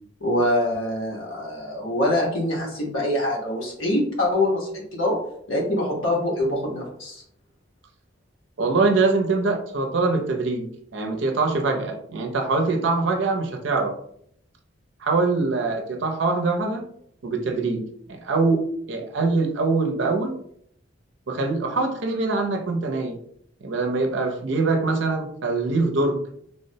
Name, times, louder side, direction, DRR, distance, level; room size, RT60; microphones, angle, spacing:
voice 1, 0.2-5.2 5.5-7.2, left 1 dB, 80° left, -2 dB, 1.0 m, -24 dB
voice 2, 8.6-10.7 10.9-13.9 15.0-16.8 17.2-17.8 18.1-18.6 18.9-20.4 21.3-23.2 23.6-26.2, right 3 dB, 65° right, 3 dB, 0.5 m, -23 dB
3.3 x 2.1 x 2.7 m, 0.69 s
head